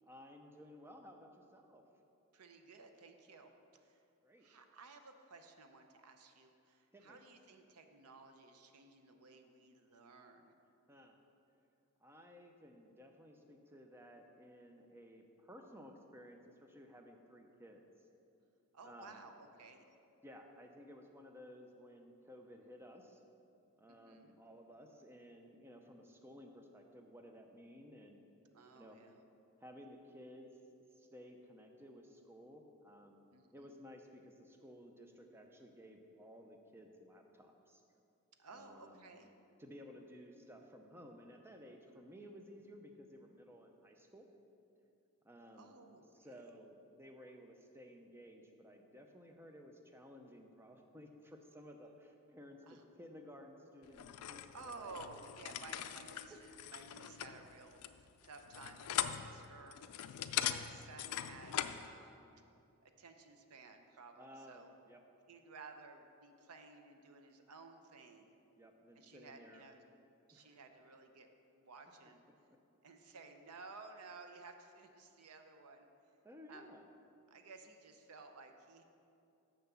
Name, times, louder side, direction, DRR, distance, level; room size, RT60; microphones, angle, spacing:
voice 1, 0.1-1.8 4.2-4.5 6.9-7.2 10.9-11.2 12.0-17.8 18.8-19.2 20.2-23.2 23.8-28.2 28.7-29.0 29.6-30.5 30.9-33.2 33.5-37.8 38.5-39.1 39.6-44.3 45.2-45.8 46.1-54.9 56.3-56.4 64.2-65.0 68.6-69.6 70.3-70.6 76.2-76.9, equal, 10° right, 3 dB, 0.5 m, -56 dB
voice 2, 2.3-3.5 3.8-4.0 4.4-10.5 18.7-19.9 23.9-24.4 28.5-29.2 33.3-33.7 38.4-39.3 45.5-46.3 52.7-52.8 54.5-59.8 60.4-62.3 62.8-64.7 65.3-68.3 68.9-69.8 70.3-71.3 71.5-72.2 72.8-75.9 76.5-76.7 77.3-78.8, right 3 dB, 85° right, 6 dB, 0.7 m, -55 dB
sound 1, 53.9-61.9, left 11 dB, 80° left, 0.4 m, -41 dB
6.5 x 5.9 x 6.9 m, 2.7 s
head